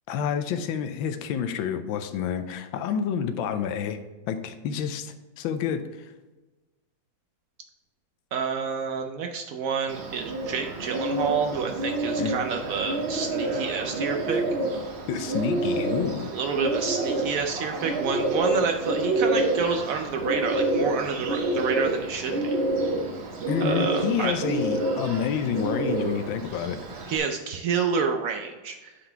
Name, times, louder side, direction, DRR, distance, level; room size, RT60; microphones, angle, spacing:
voice 1, 0.1-4.0 4.3-6.1 12.2-12.3 15.1-16.3 23.5-26.8, left 7 dB, 90° left, 8 dB, 1.4 m, -29 dB
voice 2, 8.3-14.4 16.3-22.6 23.6-24.4 27.1-28.9, right 6 dB, 90° right, 4 dB, 0.7 m, -29 dB
Bird, 9.9-27.2, right 2 dB, 50° right, 0.8 m, -28 dB
8.4 x 4.0 x 4.4 m, 1.2 s
omnidirectional pair, 2.1 m